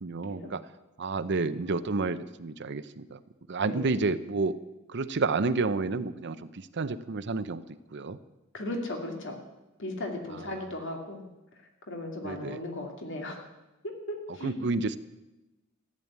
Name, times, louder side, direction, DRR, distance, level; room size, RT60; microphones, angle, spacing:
voice 1, 0.0-0.6 1.0-3.2 3.5-4.6 4.9-7.6 7.9-8.2 10.3-10.8 12.2-12.6 14.3-15.0, right 3 dB, 55° right, 12 dB, 0.7 m, -30 dB
voice 2, 8.5-9.4 9.8-11.2 11.9-13.4 13.8-14.7, left 1 dB, 65° left, 3 dB, 2.5 m, -36 dB
14.5 x 8.8 x 9.5 m, 1.0 s
head